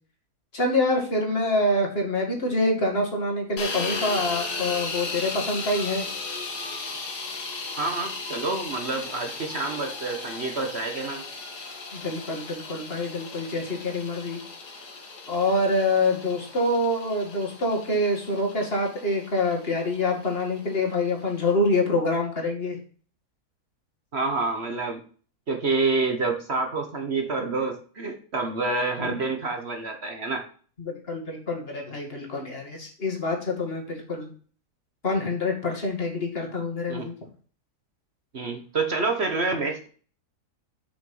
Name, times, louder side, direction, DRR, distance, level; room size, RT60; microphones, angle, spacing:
voice 1, 0.5-6.1 11.9-14.4 15.3-22.8 29.0-29.1 30.8-34.3 35.0-37.1, left 2 dB, 35° left, 1 dB, 2.4 m, -26 dB
sound 1, 3.6-21.5, left 3 dB, 75° left, 2.1 m, -36 dB
voice 2, 7.8-11.2 24.1-25.0 25.5-30.4 36.9-37.1 38.3-39.9, right 3 dB, 45° right, 4 dB, 1.3 m, -28 dB
6.7 x 6.1 x 5.5 m, 0.42 s
omnidirectional pair, 1.7 m